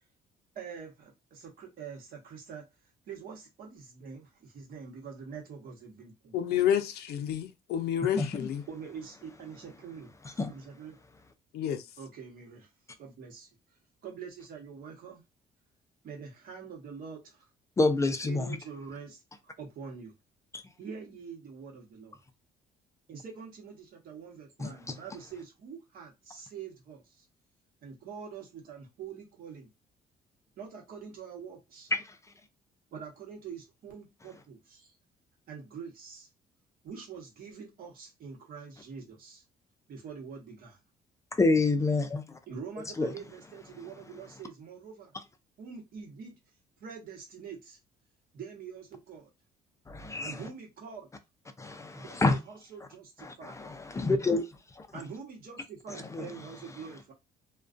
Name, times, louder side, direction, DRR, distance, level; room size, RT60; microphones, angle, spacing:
voice 1, 0.5-2.6 3.1-6.4 8.7-10.1 10.5-11.0 12.0-12.7 13.0-13.5 14.0-15.2 16.0-17.5 17.9-19.2 19.6-20.1 20.8-22.2 23.1-27.2 27.8-29.7 30.6-31.9 32.9-34.9 35.5-36.3 36.8-39.4 39.9-40.8 42.5-45.1 45.6-46.4 46.8-47.8 48.3-49.3 50.2-51.1 51.9-53.6 54.9-57.1, right 6 dB, 65° right, 1.0 m, -45 dB
voice 2, 6.3-8.6 11.5-11.8, left 10 dB, 80° left, 0.4 m, -29 dB
voice 3, 17.8-18.5 24.6-24.9 31.9-32.1 41.4-42.4 43.0-43.1 49.9-50.4 51.6-52.4 53.2-54.4 54.8-54.9 56.1-56.3, left 3 dB, 20° left, 0.3 m, -28 dB
2.4 x 2.2 x 2.4 m
cardioid pair, 110°, 16 cm